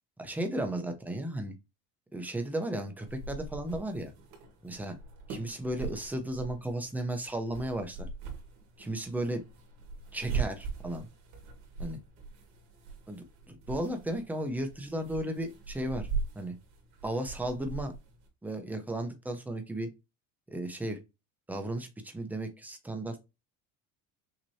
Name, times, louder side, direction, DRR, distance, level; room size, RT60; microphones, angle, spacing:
voice 1, 0.2-1.6 2.1-4.1 4.6-4.9 5.3-8.1 8.8-9.4 10.1-11.1 11.8-12.0 13.1-16.1 16.3-16.5 17.0-17.9 18.4-19.9 20.5-21.0 21.5-23.2, right 1 dB, 5° right, 0.7 m, -34 dB
sound 1, 3.1-18.3, right 5 dB, 80° right, 2.0 m, -41 dB
6.2 x 2.9 x 2.8 m
cardioid pair, 155°, 37 cm